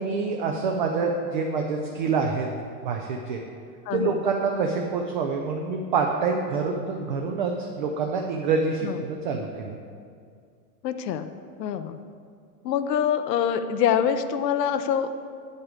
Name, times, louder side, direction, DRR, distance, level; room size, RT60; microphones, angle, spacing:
voice 1, 0.0-2.5 2.8-3.4 3.9-9.8, right 4 dB, 35° right, 2 dB, 0.4 m, -26 dB
voice 2, 3.9-4.2 8.8-9.0 10.8-11.3 11.6-12.0 12.6-15.2, left 8 dB, 90° left, 9 dB, 0.8 m, -25 dB
9.3 x 7.9 x 4.9 m, 2.2 s
supercardioid pair, 175°, 48 cm